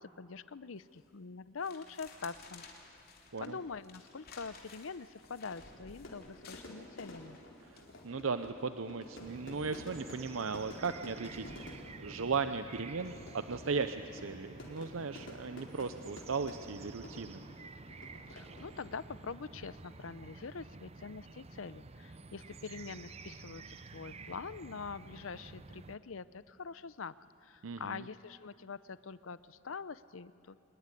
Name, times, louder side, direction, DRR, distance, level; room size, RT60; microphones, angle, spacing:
voice 1, 0.0-2.6 3.4-7.4 18.3-27.2 27.4-30.6, left 5 dB, 80° left, 16 dB, 0.7 m, -44 dB
sound 1, 0.8-1.1 1.6-8.5 9.0-9.3, left 4 dB, 50° left, 3.3 m, -56 dB
Fire / Fireworks, 5.2-19.2, left 1 dB, 65° left, 4.4 m, -51 dB
voice 2, 7.6-17.4 27.6-28.0, right 5 dB, 85° right, 10 dB, 0.7 m, -37 dB
sound 2, 9.2-26.0, right 3 dB, 30° right, 0.7 m, -51 dB
26.0 x 20.5 x 10.0 m, 2.6 s
head